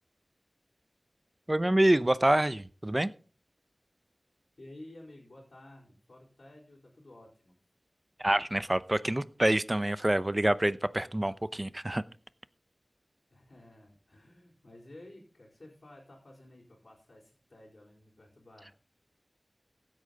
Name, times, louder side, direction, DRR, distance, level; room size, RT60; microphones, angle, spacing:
voice 1, 1.5-3.1 8.2-12.0, right 1 dB, 25° right, 15 dB, 0.7 m, -26 dB
voice 2, 4.6-7.6 13.3-18.7, left 1 dB, 75° left, -7 dB, 4.6 m, -53 dB
16.0 x 8.8 x 4.1 m, 0.38 s
wide cardioid pair, 50°, 0 cm